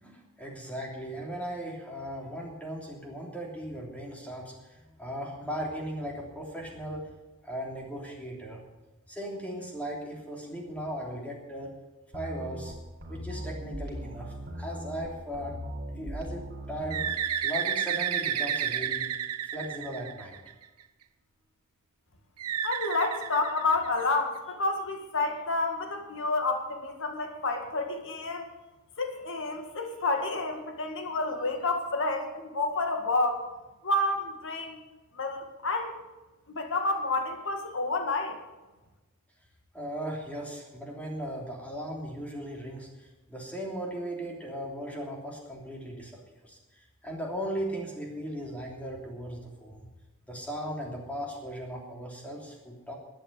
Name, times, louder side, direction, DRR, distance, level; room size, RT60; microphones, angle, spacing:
voice 1, 0.0-7.1 7.4-8.6 9.1-11.7 12.1-12.7 13.1-15.5 16.0-17.0 17.4-19.1 19.5-20.4 39.7-46.1 46.4-49.9 50.3-53.0, equal, 5° left, -1 dB, 3.2 m, -37 dB
sound 1, 12.1-17.2, equal, 45° right, 4.8 m, -39 dB
Bird, 16.9-20.6 22.4-24.2, right 9 dB, 90° right, 0.8 m, -31 dB
voice 2, 22.6-28.5 29.0-33.5 33.8-34.8 35.1-35.9 36.5-38.4, left 2 dB, 60° left, 5 dB, 2.0 m, -29 dB
13.0 x 9.1 x 8.2 m, 1.1 s
head